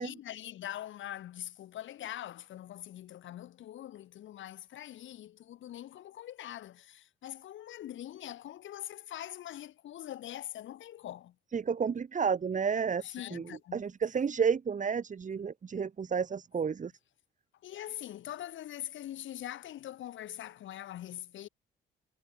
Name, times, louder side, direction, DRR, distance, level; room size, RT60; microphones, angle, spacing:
voice 1, 0.0-11.3 13.0-13.8 17.6-21.5, left 12 dB, 75° left, 3.5 m, -43 dB
voice 2, 11.5-13.4 13.7-16.9, right 6 dB, 40° right, 2.0 m, -31 dB
cardioid pair, 90°, 20 cm